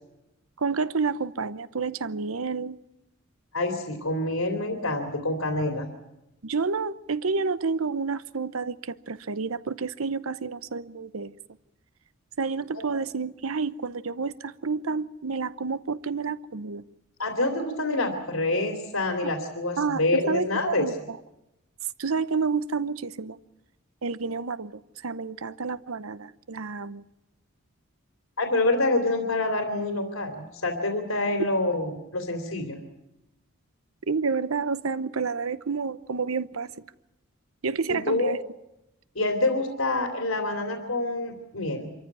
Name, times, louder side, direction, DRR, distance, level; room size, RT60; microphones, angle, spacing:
voice 1, 0.6-2.8 6.4-11.3 12.4-16.8 19.2-19.3 19.8-21.2 22.0-23.4 24.0-27.0 34.1-36.7 37.6-38.4, right 4 dB, 85° right, 0.8 m, -29 dB
voice 2, 3.5-5.9 12.7-12.8 17.2-20.9 28.4-32.8 37.9-38.4 39.1-41.9, left 2 dB, 85° left, 2.9 m, -27 dB
25.5 x 14.5 x 9.6 m
head